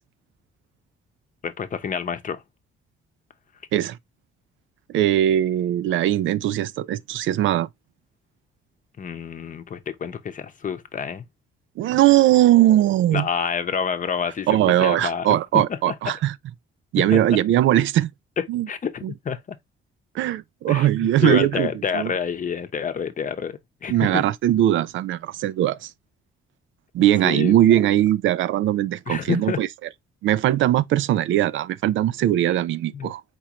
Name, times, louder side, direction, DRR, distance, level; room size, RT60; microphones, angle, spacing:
voice 1, 1.4-2.4 9.0-11.3 13.1-15.4 15.9-16.0 17.0-17.4 18.4-19.6 20.7-24.3 27.2-27.5 29.1-29.6 32.9-33.1, left 7 dB, 40° left, 0.8 m, -28 dB
voice 2, 4.9-7.7 11.8-13.3 14.5-16.3 16.9-18.1 18.5-18.7 19.0-19.1 20.1-22.1 23.9-25.9 26.9-29.7 30.2-33.2, right 13 dB, 75° right, 0.4 m, -20 dB
4.5 x 3.7 x 2.9 m
cardioid pair, 90°, 20 cm